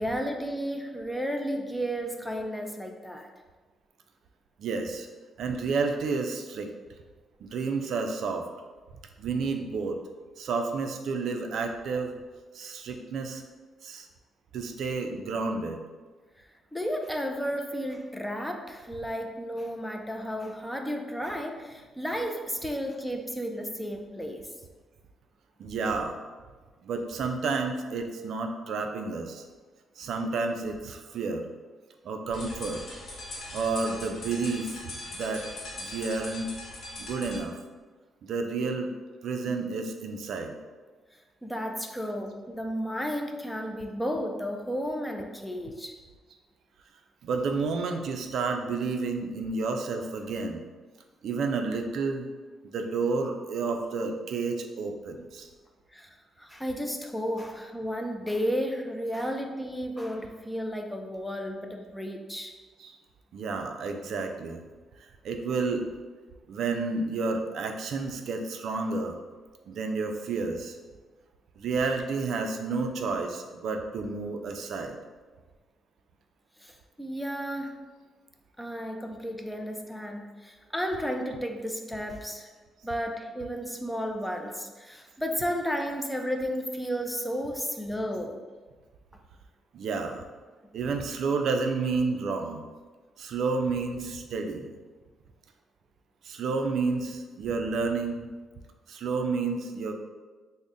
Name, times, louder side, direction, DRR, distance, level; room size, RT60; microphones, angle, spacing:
voice 1, 0.0-3.3 16.4-24.5 41.4-46.0 55.9-62.5 76.6-77.8 78.6-82.5 82.8-88.4 89.1-89.2, equal, 5° left, 3 dB, 0.4 m, -33 dB
voice 2, 4.6-5.1 5.4-6.7 7.4-8.5 9.2-10.0 10.4-12.1 12.5-13.4 13.8-14.1 14.5-15.8 25.6-26.2 26.8-29.4 30.0-31.5 32.0-32.8 33.5-35.4 35.8-36.5 37.0-37.6 38.2-38.9 39.2-40.5 47.2-50.6 51.2-52.3 52.7-55.5 62.8-62.9 63.3-64.6 65.2-65.9 66.5-69.2 69.7-70.8 71.6-75.0 89.7-90.2 90.7-92.6 93.2-94.7 96.2-98.3 98.9-99.9, right 4 dB, 70° right, 4 dB, 0.3 m, -30 dB
sound 1, 32.3-37.4, left 1 dB, 60° left, 0.9 m, -40 dB
3.8 x 2.1 x 3.6 m, 1.3 s
cardioid pair, 90°, 0 cm